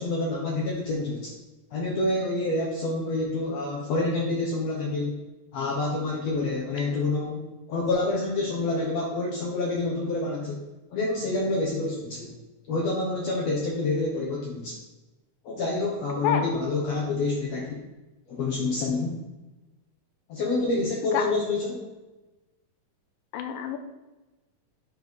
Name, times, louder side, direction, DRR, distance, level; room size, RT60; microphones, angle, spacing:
voice 1, 0.0-1.4 1.7-5.2 5.5-7.4 7.7-10.6 10.9-12.3 12.7-14.8 15.4-17.8 18.3-19.1 20.3-21.8, left 2 dB, 65° left, -2 dB, 1.7 m, -27 dB
voice 2, 23.3-23.8, left 9 dB, 85° left, 6 dB, 2.4 m, -27 dB
9.4 x 4.1 x 5.4 m, 1.1 s
omnidirectional pair, 4.2 m